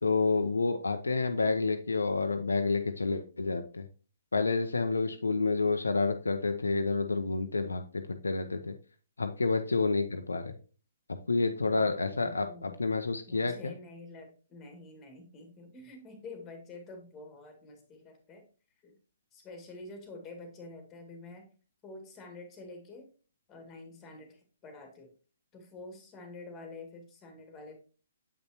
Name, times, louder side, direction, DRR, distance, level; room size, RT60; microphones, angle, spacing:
voice 1, 0.0-3.8 4.3-8.7 9.2-10.5 11.3-13.7, left 3 dB, 80° left, 6 dB, 0.6 m, -29 dB
voice 2, 11.6-12.8 13.3-18.4 18.8-19.0 19.3-21.5 21.8-23.1 23.5-25.1 25.5-27.8, left 2 dB, 20° left, 4 dB, 2.0 m, -48 dB
7.8 x 5.4 x 2.9 m, 0.37 s
figure-of-eight pair, 125°, 0 cm